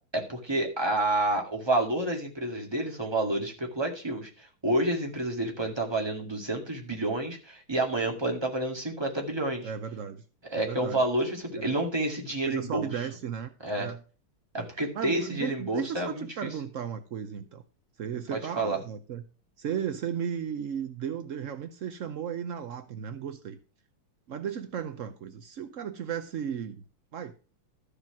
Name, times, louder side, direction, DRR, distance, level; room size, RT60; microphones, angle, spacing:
voice 1, 0.1-9.7 10.5-12.9 13.6-13.9 14.5-16.5 18.3-18.8, right 1 dB, 10° right, 2.0 m, -29 dB
voice 2, 9.6-10.2 10.6-11.0 11.6-11.7 12.5-13.5 13.7-14.0 14.6-17.6 18.0-19.2 19.6-23.6 24.3-26.8 27.1-27.3, right 8 dB, 75° right, 0.7 m, -35 dB
13.0 x 5.0 x 5.9 m
omnidirectional pair, 2.4 m